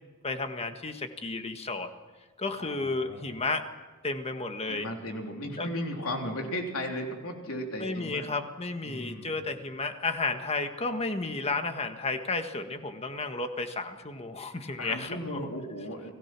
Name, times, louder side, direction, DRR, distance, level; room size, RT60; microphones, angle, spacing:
voice 1, 0.2-1.9 2.4-3.6 4.0-4.9 5.6-5.7 7.8-15.5, left 3 dB, 30° left, 7 dB, 1.6 m, -32 dB
voice 2, 2.6-3.3 4.7-8.3 8.8-9.4 14.8-16.1, left 1 dB, 75° left, 2 dB, 3.7 m, -36 dB
30.0 x 18.5 x 6.1 m, 1.3 s
head